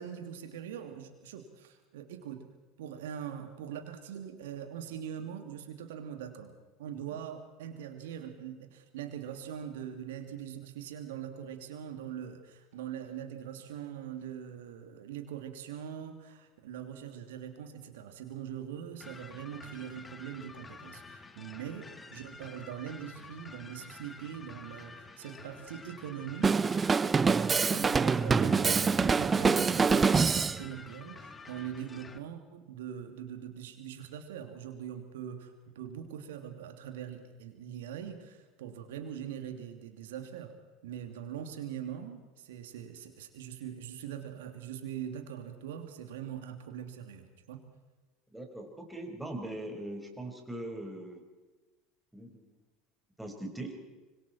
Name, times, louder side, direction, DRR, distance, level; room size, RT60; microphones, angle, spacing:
voice 1, 0.0-2.5 2.8-6.5 6.8-26.6 27.7-40.5 40.8-47.6, right 9 dB, 70° right, 6 dB, 2.7 m, -42 dB
sound 1, 19.0-32.2, left 3 dB, 20° left, 1.8 m, -49 dB
Drum kit, 26.4-30.6, right 5 dB, 25° right, 0.6 m, -25 dB
voice 2, 48.3-51.2 52.1-52.4 53.2-53.7, right 1 dB, 5° right, 2 dB, 5.2 m, -41 dB
25.5 x 23.0 x 4.5 m, 1.2 s
hypercardioid pair, 75°, 0 cm